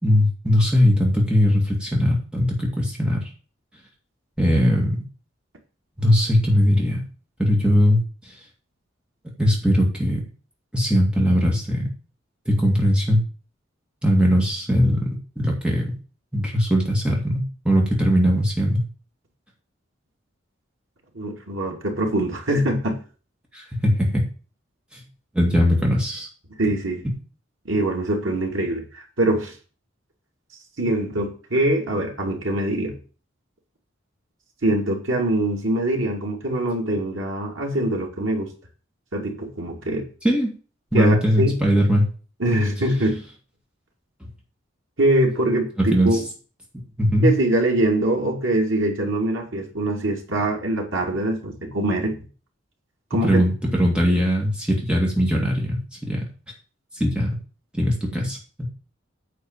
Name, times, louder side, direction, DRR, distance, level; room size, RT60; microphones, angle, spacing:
voice 1, 0.0-3.3 4.4-5.0 6.0-7.0 7.4-8.0 8.3-8.4 9.4-10.2 10.7-11.9 12.5-13.2 14.0-15.9 16.3-18.8 23.5-24.3 24.9-25.0 25.3-26.3 40.2-40.5 40.9-42.0 45.8-46.2 46.7-47.4 53.2-56.2 56.9-57.3 57.7-58.6, equal, 5° right, -2 dB, 2.2 m, -20 dB
voice 2, 21.1-23.0 26.6-27.0 27.6-29.5 30.8-33.0 34.6-38.5 39.1-40.1 40.9-41.6 42.4-43.2 45.0-46.2 47.2-52.2 53.1-53.3, right 1 dB, 90° right, 1 dB, 2.7 m, -23 dB
9.4 x 4.6 x 7.4 m, 0.37 s
head